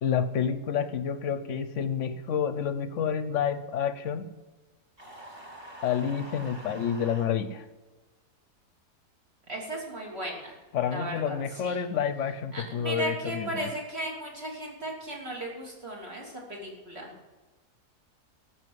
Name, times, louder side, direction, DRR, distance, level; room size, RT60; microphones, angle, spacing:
voice 1, 0.0-4.3 5.8-7.7 10.7-13.7, left 8 dB, 55° left, 12 dB, 1.0 m, -29 dB
sound 1, 5.0-7.3, right 1 dB, 15° right, 2.8 m, -45 dB
voice 2, 9.5-10.6 10.9-11.4 11.6-11.8 12.5-17.1, right 1 dB, 40° right, -2 dB, 3.4 m, -36 dB
13.5 x 6.7 x 9.4 m, 1.2 s
omnidirectional pair, 1.6 m